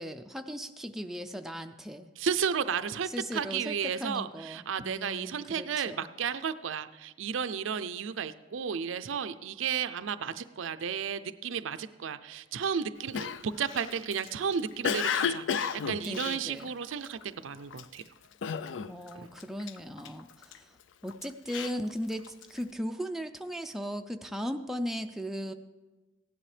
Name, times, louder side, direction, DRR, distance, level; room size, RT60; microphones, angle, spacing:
voice 1, 0.0-2.1 3.1-6.1 16.1-16.7 18.9-20.8 21.0-25.5, equal, ahead, 5 dB, 0.4 m, -37 dB
voice 2, 2.2-18.0 19.1-19.3, right 7 dB, 85° right, 12 dB, 0.5 m, -33 dB
Cough, 13.1-17.2 17.7-18.0 18.4-19.1 19.4-20.6 21.1-22.6, left 7 dB, 75° left, 0.4 m, -33 dB
16.0 x 10.5 x 3.3 m, 1.2 s
head